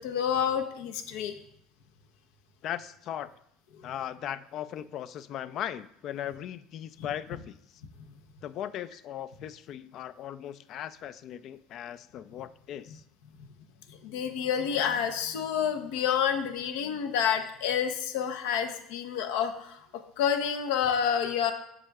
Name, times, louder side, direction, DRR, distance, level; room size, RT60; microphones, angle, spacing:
voice 1, 0.0-1.4 13.9-19.8 20.2-21.5, left 8 dB, 80° left, 6 dB, 0.7 m, -28 dB
voice 2, 2.6-3.3 3.8-7.6 8.4-13.0, left 10 dB, 55° left, 15 dB, 0.3 m, -38 dB
7.3 x 6.5 x 2.3 m, 0.72 s
supercardioid pair, 90°, 0 cm